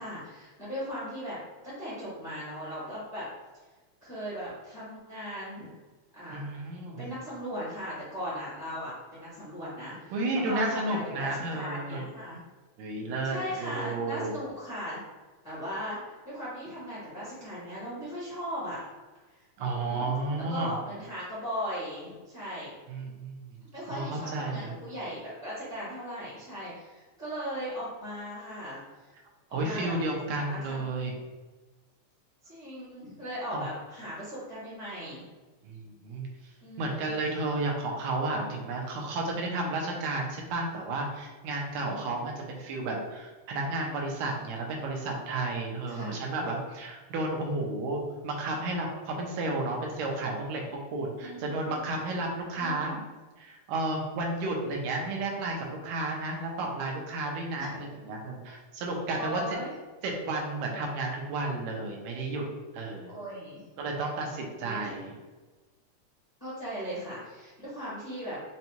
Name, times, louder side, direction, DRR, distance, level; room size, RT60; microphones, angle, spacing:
voice 1, 0.0-1.4 1.6-3.3 4.0-5.7 6.1-6.5 7.0-10.1 10.4-12.4 13.2-15.0 15.4-18.8 19.3-20.1 20.5-22.7 23.7-28.8 29.5-29.9 30.4-30.8 32.4-35.2 36.6-37.1 37.4-37.5 41.8-42.3 45.9-46.2 51.2-51.8 52.5-53.0 57.6-57.7 59.2-59.7 63.1-63.6 64.6-64.8 66.4-68.4, equal, 50° left, -11 dB, 0.4 m, -38 dB
voice 2, 6.3-7.0 10.1-12.0 12.8-14.3 19.6-20.7 22.9-23.6 23.9-24.7 29.5-31.1 33.5-33.7 35.6-36.3 36.8-52.9 53.4-59.6 60.2-62.4 62.7-63.1 63.8-65.1, right 2 dB, 75° right, 0 dB, 1.9 m, -32 dB
5.3 x 2.3 x 2.9 m, 1.3 s
omnidirectional pair, 3.3 m